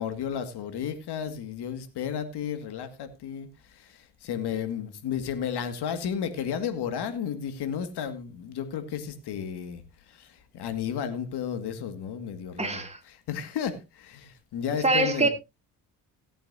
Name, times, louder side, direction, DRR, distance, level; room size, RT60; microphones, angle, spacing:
voice 1, 0.0-15.3, left 8 dB, 70° left, 2.1 m, -33 dB
voice 2, 12.6-13.0 14.8-15.3, right 2 dB, 15° right, 2.8 m, -24 dB
17.5 x 8.7 x 2.7 m
supercardioid pair, 60°, 41 cm